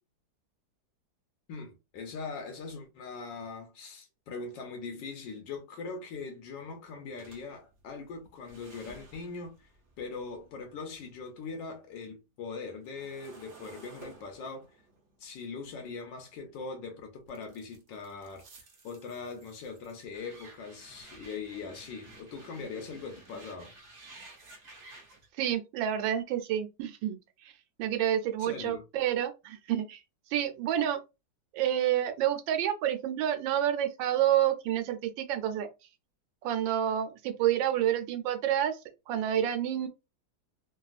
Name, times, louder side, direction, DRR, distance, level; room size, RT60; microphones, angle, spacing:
voice 1, 1.5-9.7 10.0-14.8 15.2-18.4 18.8-23.7 28.4-28.8, left 4 dB, 80° left, 1.4 m, -41 dB
sound 1, 7.2-11.4 11.8-16.7 17.3-25.3, right 3 dB, 55° right, 0.9 m, -54 dB
voice 2, 25.4-27.2 27.4-27.5 27.8-30.0 30.3-31.0 31.5-35.7 36.4-38.8 39.1-39.9, right 10 dB, 90° right, 1.3 m, -29 dB
3.3 x 2.3 x 2.3 m
omnidirectional pair, 2.0 m